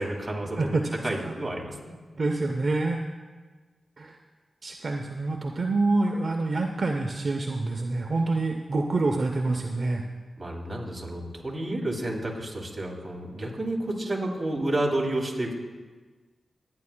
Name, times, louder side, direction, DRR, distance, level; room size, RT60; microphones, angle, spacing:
voice 1, 0.0-1.9 10.4-15.5, right 1 dB, 20° right, -2 dB, 2.7 m, -30 dB
voice 2, 2.2-3.0 4.0-4.1 4.6-10.0, right 3 dB, 50° right, 2 dB, 0.7 m, -26 dB
25.5 x 9.5 x 2.2 m, 1.4 s
wide cardioid pair, 80°, 0 cm